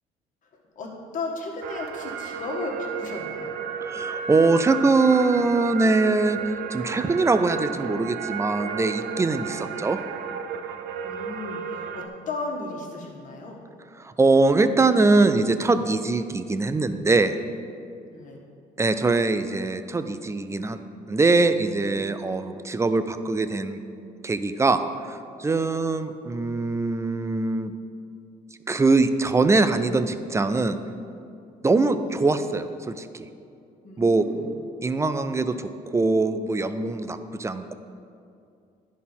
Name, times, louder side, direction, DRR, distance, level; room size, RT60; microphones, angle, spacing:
voice 1, 0.7-3.5 11.0-13.6 18.1-18.4 25.5-25.7 32.1-32.2 33.8-34.5, left 3 dB, 55° left, -1 dB, 1.6 m, -35 dB
sound 1, 1.6-12.1, right 7 dB, 75° right, 0.6 m, -33 dB
voice 2, 3.8-6.4 6.7-10.0 14.0-17.3 18.8-20.8 21.1-23.8 24.2-27.7 28.7-30.8 31.6-33.3 34.0-34.3 34.8-37.7, right 3 dB, 15° right, 11 dB, 0.5 m, -22 dB
10.0 x 4.2 x 5.5 m, 2.5 s
supercardioid pair, 80°, 16 cm